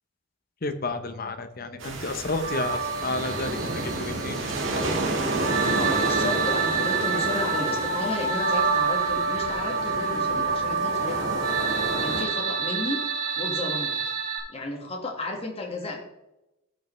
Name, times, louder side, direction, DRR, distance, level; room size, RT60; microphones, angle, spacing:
voice 1, 0.6-5.0, left 2 dB, 40° left, 9 dB, 0.8 m, -32 dB
sound 1, 1.8-12.2, right 2 dB, 60° right, 1.5 m, -31 dB
sound 2, 2.4-14.4, right 5 dB, 90° right, 2.3 m, -27 dB
voice 2, 5.7-13.0 13.4-13.9 14.5-16.0, left 2 dB, 25° left, 0 dB, 1.6 m, -33 dB
14.0 x 5.4 x 3.2 m, 0.90 s
head